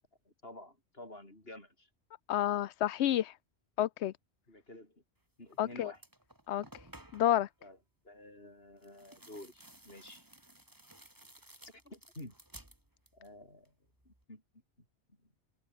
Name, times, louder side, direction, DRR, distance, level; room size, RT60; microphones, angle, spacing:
voice 1, 0.3-1.9 4.5-5.0 5.4-6.0 7.6-7.8 8.0-10.3 11.8-12.3 13.1-13.7 14.1-14.4 15.2-15.3, left 1 dB, 65° left, 7.2 m, -51 dB
voice 2, 2.3-3.3 3.8-4.1 5.6-5.9 6.5-6.6 7.1-7.5, left 12 dB, 85° left, 0.9 m, -29 dB
sound 1, 5.5-5.6 5.9-7.4 8.8-13.4 13.6-14.2, right 1 dB, 20° right, 2.8 m, -56 dB
omnidirectional pair, 1.1 m